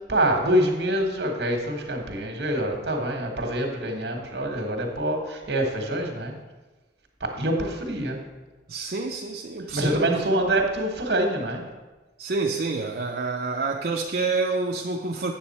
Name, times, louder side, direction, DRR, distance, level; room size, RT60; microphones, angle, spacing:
voice 1, 0.1-6.3 7.2-8.2 9.7-11.6, right 1 dB, 70° right, 3 dB, 1.4 m, -25 dB
voice 2, 8.7-10.1 12.2-15.3, right 3 dB, 55° right, 1 dB, 0.5 m, -28 dB
8.5 x 7.1 x 4.2 m, 1.2 s
head